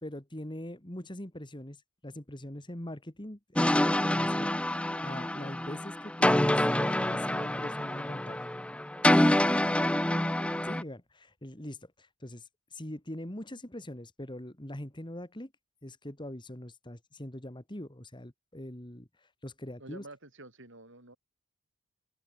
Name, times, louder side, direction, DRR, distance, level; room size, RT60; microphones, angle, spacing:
voice 1, 0.0-8.4 10.7-15.5 15.8-20.0, left 1 dB, 20° left, 2.1 m, -42 dB
sound 1, 3.6-10.8, left 1 dB, 5° left, 0.5 m, -27 dB
voice 2, 19.8-21.2, right 2 dB, 55° right, 6.1 m, -50 dB
open air
head